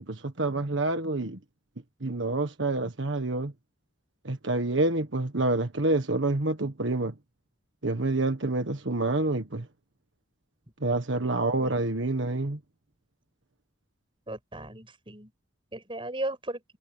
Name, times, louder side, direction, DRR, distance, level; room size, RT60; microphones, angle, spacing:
voice 1, 0.0-1.4 2.0-3.5 4.2-7.1 7.8-9.6 10.8-12.6, right 2 dB, 80° right, 1.5 m, -27 dB
voice 2, 11.2-12.0 14.3-15.3 15.7-16.6, right 1 dB, 30° right, 5.6 m, -37 dB
head